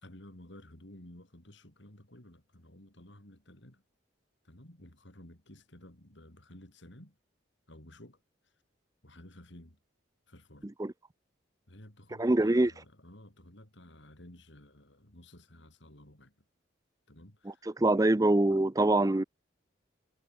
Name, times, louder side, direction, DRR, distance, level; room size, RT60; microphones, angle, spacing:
voice 1, 0.0-3.8 4.4-7.2 7.7-8.5 9.0-9.8 10.3-10.7 11.7-16.4 17.1-17.7, left 1 dB, 65° left, 4.8 m, -53 dB
voice 2, 12.2-12.7 17.8-19.2, right 2 dB, 15° right, 0.5 m, -24 dB
head